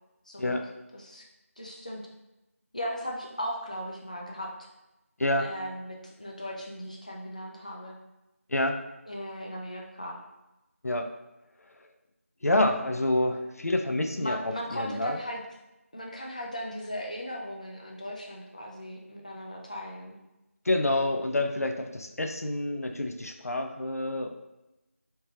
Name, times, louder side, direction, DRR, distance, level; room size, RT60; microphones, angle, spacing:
voice 1, 0.3-0.6 0.9-1.3 1.6-2.0 2.7-4.7 5.4-8.0 9.1-10.2 14.2-15.4 15.9-20.2, equal, 30° left, -1 dB, 0.4 m, -37 dB
voice 2, 12.4-15.2 20.7-24.3, left 1 dB, 90° left, 5 dB, 0.5 m, -28 dB
3.2 x 2.9 x 3.0 m, 0.98 s
figure-of-eight pair, 175°, 8 cm